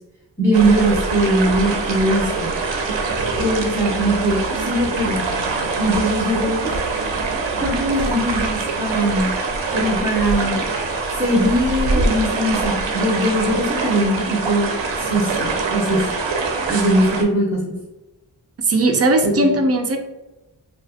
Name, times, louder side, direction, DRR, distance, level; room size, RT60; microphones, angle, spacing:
voice 1, 0.4-2.5 3.4-5.2 5.8-6.6 7.6-9.3 9.7-10.6 11.1-14.7 15.0-16.0 16.7-17.7 19.2-19.4, right 1 dB, 5° right, -6 dB, 0.7 m, -20 dB
sound 1, 0.5-17.2, right 3 dB, 85° right, 0.6 m, -23 dB
voice 2, 18.7-20.0, right 2 dB, 35° right, 4 dB, 0.4 m, -17 dB
2.9 x 2.6 x 2.4 m, 1.0 s
wide cardioid pair, 115°, 44 cm